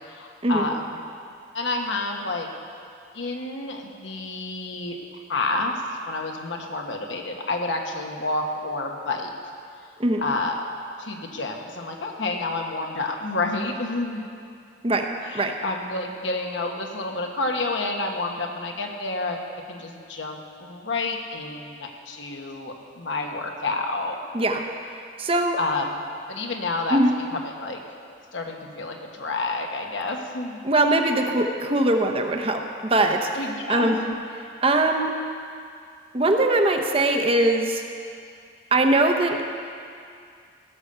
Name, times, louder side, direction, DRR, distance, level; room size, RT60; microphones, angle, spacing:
voice 1, 0.1-1.0 1.5-2.5 3.1-5.0 5.3-5.7 6.1-9.3 10.2-10.7 11.0-14.4 15.2-19.4 19.7-24.2 25.6-26.0 26.3-27.0 27.3-27.8 28.3-30.6 33.3-34.2, left 2 dB, 75° left, 2 dB, 1.3 m, -29 dB
voice 2, 25.2-25.6 26.9-27.1 30.6-33.3 33.7-33.9 34.6-35.1 36.1-37.8 38.7-39.4, right 2 dB, 30° right, 4 dB, 0.8 m, -21 dB
16.5 x 7.0 x 6.7 m, 2.3 s
head